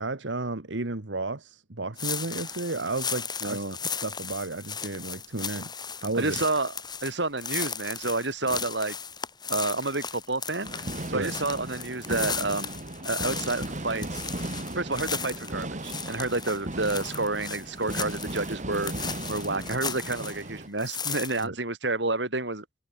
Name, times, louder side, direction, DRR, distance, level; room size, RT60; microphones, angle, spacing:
voice 1, 0.0-3.6 4.0-5.7 6.0-6.3 11.1-11.3 21.4-21.5, right 2 dB, 85° right, 1.7 m, -32 dB
sound 1, 2.0-20.5 20.8-21.4, left 6 dB, 25° left, 7.1 m, -36 dB
voice 2, 3.4-3.8 6.1-6.7 7.0-9.0 9.5-12.8 13.0-14.2 14.7-22.6, right 2 dB, 70° right, 5.2 m, -29 dB
sound 2, 10.6-20.7, right 1 dB, 40° right, 2.7 m, -37 dB
head